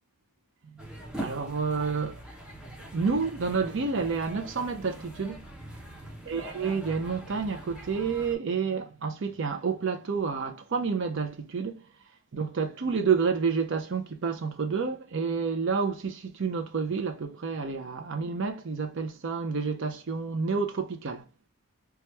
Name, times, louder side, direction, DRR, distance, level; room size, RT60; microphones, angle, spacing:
sound 1, 0.8-8.4, right 1 dB, 5° right, 0.6 m, -43 dB
voice 1, 1.2-2.2 2.7-5.7 6.3-11.8 12.3-21.2, right 5 dB, 55° right, 0.5 m, -29 dB
3.0 x 2.3 x 3.2 m
head